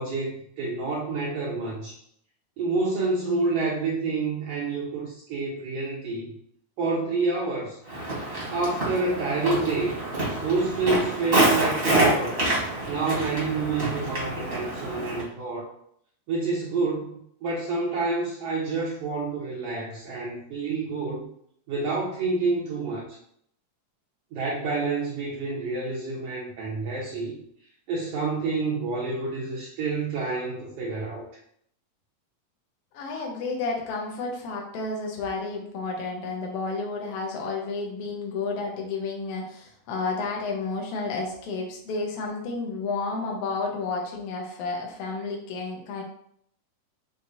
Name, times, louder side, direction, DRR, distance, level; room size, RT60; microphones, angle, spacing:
voice 1, 0.0-2.0 2.6-6.3 6.8-7.8 8.5-10.0 10.4-12.4 12.9-15.7 16.3-21.3 21.7-23.0 24.3-27.3 27.9-31.2, right 3 dB, 70° right, -6 dB, 1.6 m, -28 dB
Walk footsteps, 7.9-15.2, right 2 dB, 30° right, 1.1 m, -26 dB
voice 2, 32.9-46.0, left 3 dB, 65° left, 0 dB, 1.7 m, -31 dB
6.2 x 2.6 x 2.7 m, 0.68 s
omnidirectional pair, 3.3 m